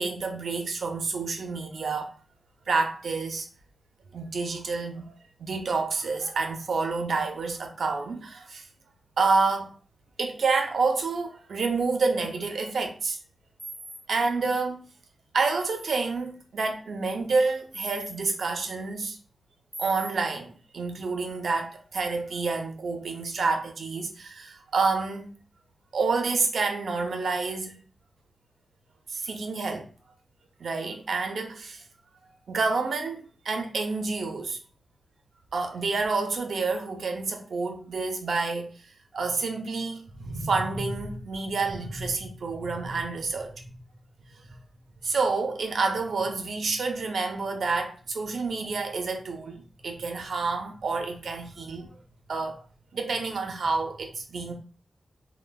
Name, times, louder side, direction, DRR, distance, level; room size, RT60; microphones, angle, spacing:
voice 1, 0.0-2.1 2.7-3.5 4.1-5.1 5.4-8.6 9.2-9.7 10.2-13.2 14.1-14.8 15.3-19.2 19.8-25.3 25.9-27.8 29.1-29.8 30.6-31.8 32.5-34.6 35.5-38.7 39.1-43.6 45.0-51.9 52.3-52.6 52.9-54.5, right 4 dB, 80° right, 0.5 m, -28 dB
sound 1, 13.6-14.0 15.6-16.0 17.7-18.1 19.7-20.1, right 1 dB, 10° right, 0.7 m, -39 dB
3.1 x 2.0 x 2.2 m
wide cardioid pair, 100°, 0 cm